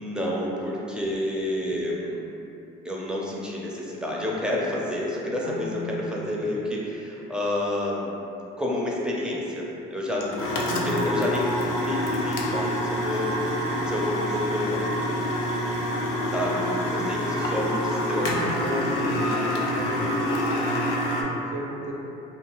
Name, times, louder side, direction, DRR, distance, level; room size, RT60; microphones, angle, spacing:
voice 1, 0.0-2.2 2.8-8.1 8.6-10.4 10.7-14.9 16.3-18.4 19.0-19.4, left 1 dB, 5° right, -4 dB, 0.5 m, -29 dB
voice 2, 5.4-6.5 10.7-11.1 16.5-17.3 18.2-21.9, right 1 dB, 80° right, -1 dB, 0.5 m, -33 dB
sound 1, 10.2-21.2, left 1 dB, 75° left, 0.5 m, -27 dB
2.7 x 2.2 x 2.9 m, 2.9 s
supercardioid pair, 80°, 21 cm